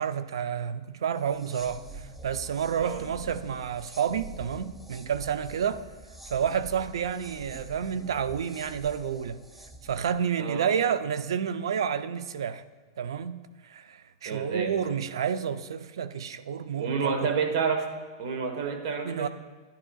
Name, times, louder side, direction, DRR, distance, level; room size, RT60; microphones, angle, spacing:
voice 1, 0.0-5.8 6.3-9.4 9.8-12.6 13.0-13.4 13.6-17.3 19.0-19.3, right 8 dB, 85° right, 0.4 m, -30 dB
sound 1, 1.2-10.2, right 1 dB, 5° right, 0.5 m, -46 dB
voice 2, 10.4-10.7 14.2-14.8 16.8-17.9 18.2-19.3, right 5 dB, 65° right, 1.2 m, -29 dB
10.5 x 10.0 x 2.3 m
hypercardioid pair, 135°, 2 cm